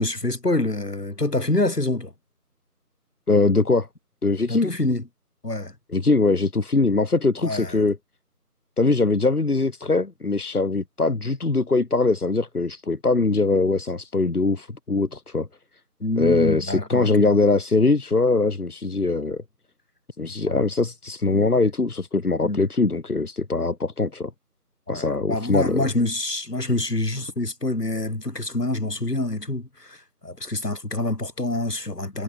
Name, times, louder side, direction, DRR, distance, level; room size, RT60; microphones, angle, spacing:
voice 1, 0.0-2.1 4.5-5.0 5.4-5.8 7.4-7.8 16.0-17.1 20.5-20.7 22.4-22.6 24.9-32.2, left 2 dB, 90° left, 3.7 m, -26 dB
voice 2, 3.3-3.9 4.2-4.7 5.9-8.0 8.8-15.5 16.2-19.4 20.2-24.3 24.9-25.9, left 3 dB, 75° left, 1.6 m, -22 dB
figure-of-eight pair, 180°, 46 cm